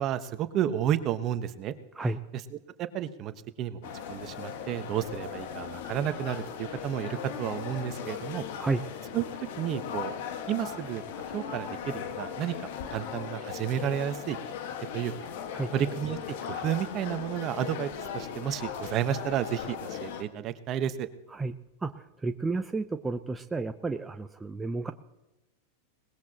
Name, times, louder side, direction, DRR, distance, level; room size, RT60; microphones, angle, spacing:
voice 1, 0.0-1.7 2.8-3.3 3.6-3.8 4.1-8.5 9.1-10.1 10.5-11.0 11.3-14.4 14.9-15.1 15.7-21.1, right 10 dB, 40° right, 11 dB, 1.2 m, -31 dB
sound 1, 3.8-20.2, left 7 dB, 65° left, 1.6 m, -38 dB
voice 2, 21.8-24.9, right 3 dB, 10° right, 7 dB, 0.8 m, -31 dB
21.5 x 19.5 x 3.0 m, 0.99 s
hypercardioid pair, 105°, 0 cm